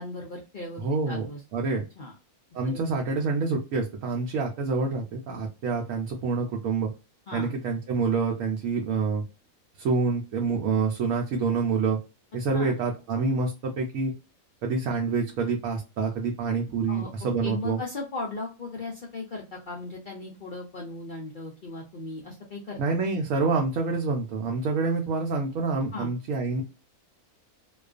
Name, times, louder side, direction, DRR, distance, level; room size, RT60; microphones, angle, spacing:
voice 1, 0.0-1.4 2.0-2.1 2.6-2.8 7.3-7.5 12.5-12.7 16.9-17.1 17.4-22.8 25.9-26.1, left 3 dB, 75° left, -1 dB, 0.4 m, -37 dB
voice 2, 0.8-1.3 1.5-1.8 2.5-6.9 7.3-9.2 9.8-12.0 12.3-14.1 14.6-17.8 22.8-26.6, right 4 dB, 70° right, 0 dB, 0.9 m, -27 dB
2.4 x 2.3 x 2.3 m, 0.31 s
omnidirectional pair, 1.5 m